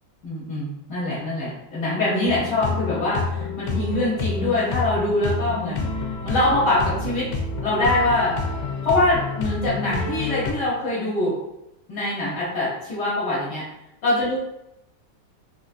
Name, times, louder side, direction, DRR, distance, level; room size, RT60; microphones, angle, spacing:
voice 1, 0.2-5.9 6.2-7.3 7.6-8.3 8.8-11.3 11.9-13.6 14.0-14.4, left 2 dB, 65° left, -9 dB, 1.4 m, -23 dB
sound 1, 2.3-10.5, left 4 dB, 85° left, 1.4 m, -28 dB
3.8 x 2.4 x 2.4 m, 0.84 s
omnidirectional pair, 2.2 m